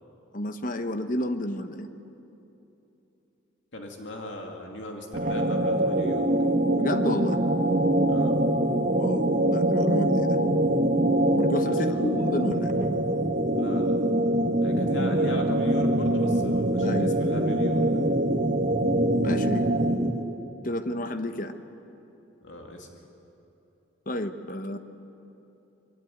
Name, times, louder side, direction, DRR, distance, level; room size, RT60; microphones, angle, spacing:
voice 1, 0.3-1.9 6.8-7.4 9.0-10.4 11.3-12.7 16.8-17.1 19.2-19.6 20.6-21.5 24.1-24.8, left 1 dB, 45° left, 8 dB, 1.1 m, -31 dB
voice 2, 3.7-6.3 8.1-8.4 11.7-12.0 13.5-14.0 14.6-17.8 22.4-22.9, left 1 dB, 80° left, 2 dB, 2.5 m, -38 dB
sound 1, 5.1-20.3, right 1 dB, 45° right, 1.3 m, -24 dB
22.5 x 16.0 x 9.5 m, 2.9 s
head